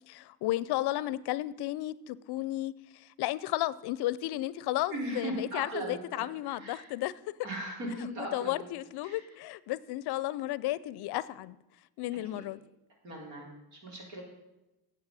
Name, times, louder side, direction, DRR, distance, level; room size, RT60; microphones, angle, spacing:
voice 1, 0.1-7.1 8.2-11.6 12.0-12.6, left 15 dB, 50° left, 19 dB, 0.5 m, -33 dB
voice 2, 4.9-6.9 7.4-8.6 9.0-9.2 12.3-12.4 13.0-14.2, right 1 dB, 80° right, -2 dB, 3.9 m, -38 dB
9.6 x 7.9 x 6.2 m, 1.0 s
supercardioid pair, 75°, 50 cm